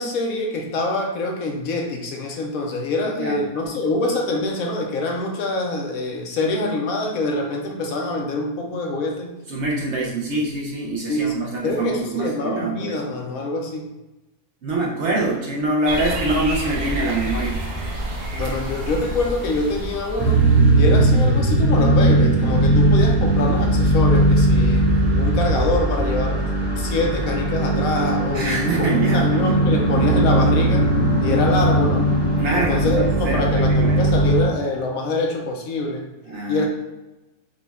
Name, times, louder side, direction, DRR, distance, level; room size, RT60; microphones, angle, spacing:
voice 1, 0.0-9.3 11.1-13.9 18.3-20.5 20.7-24.9 25.2-26.4 26.8-30.9 31.2-32.1 32.5-36.1 36.5-36.7, left 2 dB, 70° left, 2 dB, 1.0 m, -25 dB
voice 2, 9.5-13.0 14.6-17.6 28.3-29.3 32.3-34.0 36.3-36.7, right 2 dB, 60° right, -3 dB, 0.8 m, -24 dB
sound 1, 15.9-21.4, right 1 dB, 80° right, 1.3 m, -29 dB
sound 2, 20.2-34.4, right 1 dB, 10° right, 0.8 m, -18 dB
5.0 x 2.3 x 3.4 m, 1.0 s
omnidirectional pair, 1.6 m